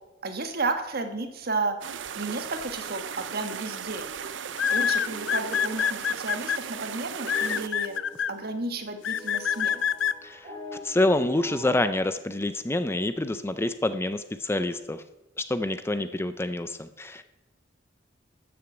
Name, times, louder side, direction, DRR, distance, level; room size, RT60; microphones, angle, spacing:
voice 1, 0.2-1.8 2.2-4.0 4.7-7.9 8.3-9.8, right 3 dB, 55° right, 7 dB, 1.4 m, -32 dB
sound 1, 1.8-7.7, right 8 dB, 75° right, 0.6 m, -37 dB
sound 2, 3.1-3.4 4.6-6.6 7.3-8.3 9.0-10.1, left 8 dB, 75° left, 0.5 m, -26 dB
sound 3, 3.9-11.9, right 1 dB, 40° right, 5.9 m, -44 dB
voice 2, 10.2-10.5 10.8-15.0 15.4-17.2, left 2 dB, 15° left, 11 dB, 0.5 m, -27 dB
13.0 x 7.0 x 7.7 m, 1.0 s
head